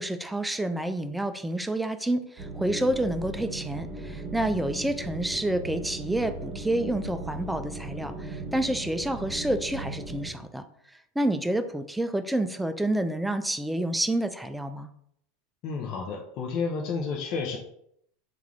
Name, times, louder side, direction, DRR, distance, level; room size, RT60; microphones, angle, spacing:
voice 1, 0.0-10.6 11.2-14.9, right 1 dB, 5° right, 9 dB, 0.3 m, -28 dB
sound 1, 2.4-10.3, right 2 dB, 25° right, 1.0 m, -37 dB
voice 2, 15.6-17.6, left 5 dB, 50° left, 0 dB, 0.5 m, -31 dB
3.5 x 2.4 x 3.1 m, 0.72 s
hypercardioid pair, 90°, 0 cm